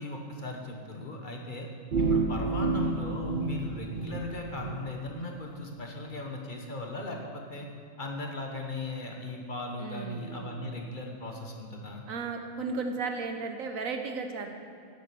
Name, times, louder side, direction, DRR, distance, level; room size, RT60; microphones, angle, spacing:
voice 1, 0.0-1.7 2.0-7.7 8.0-12.0, left 2 dB, 40° left, 1 dB, 1.3 m, -38 dB
sound 1, 1.9-4.8, right 3 dB, 45° right, 0.8 m, -29 dB
voice 2, 9.8-10.6 12.1-14.5, right 4 dB, 80° right, 5 dB, 1.4 m, -35 dB
10.5 x 8.3 x 6.9 m, 2.4 s
omnidirectional pair, 1.4 m